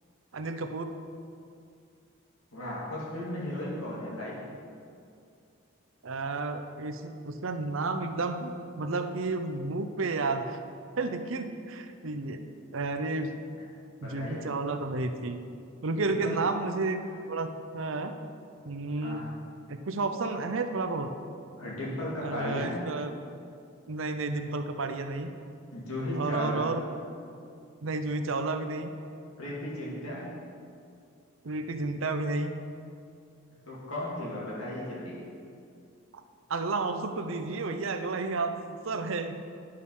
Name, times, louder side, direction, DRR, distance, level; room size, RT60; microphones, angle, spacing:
voice 1, 0.3-0.9 6.0-10.6 11.0-12.4 12.7-13.3 14.0-15.4 15.8-18.1 18.7-19.2 19.7-21.1 22.2-23.1 23.9-25.3 26.2-26.9 27.8-28.9 31.4-32.5 36.5-39.4, right 3 dB, 70° right, 7 dB, 0.7 m, -31 dB
voice 2, 2.5-4.4 14.0-14.5 16.0-16.4 19.0-19.3 21.6-22.8 25.7-26.7 29.4-30.3 33.7-35.2, left 1 dB, 85° left, -6 dB, 2.4 m, -35 dB
10.5 x 6.5 x 5.5 m, 2.4 s
head